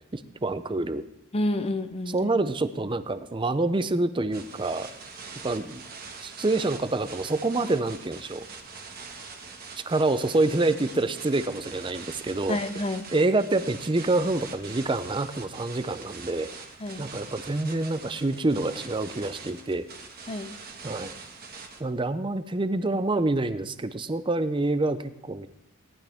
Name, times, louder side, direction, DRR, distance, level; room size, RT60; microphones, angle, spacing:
voice 1, 0.1-1.0 2.1-4.9 5.4-5.8 6.2-8.5 9.9-12.6 13.1-16.5 17.0-19.9 20.8-21.1 21.8-25.5, right 2 dB, 25° right, 12 dB, 0.5 m, -27 dB
voice 2, 1.3-2.3 12.5-13.0 16.8-17.0 20.3-20.5, left 1 dB, 30° left, 10 dB, 0.6 m, -29 dB
sound 1, 4.3-21.8, right 4 dB, 45° right, 1.6 m, -43 dB
18.0 x 11.5 x 3.5 m, 0.85 s
head